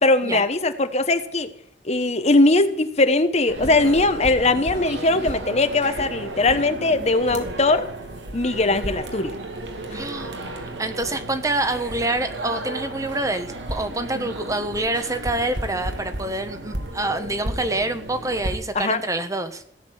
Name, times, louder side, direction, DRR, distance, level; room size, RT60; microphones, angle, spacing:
voice 1, 0.0-1.5 1.8-7.9 8.3-9.3 18.7-19.0, left 2 dB, 35° left, 10 dB, 1.1 m, -20 dB
sound 1, 3.5-18.5, right 1 dB, 80° right, 2.8 m, -33 dB
voice 2, 9.9-10.3 10.8-19.6, right 2 dB, 20° right, 9 dB, 1.2 m, -26 dB
16.5 x 7.6 x 9.9 m, 0.66 s
head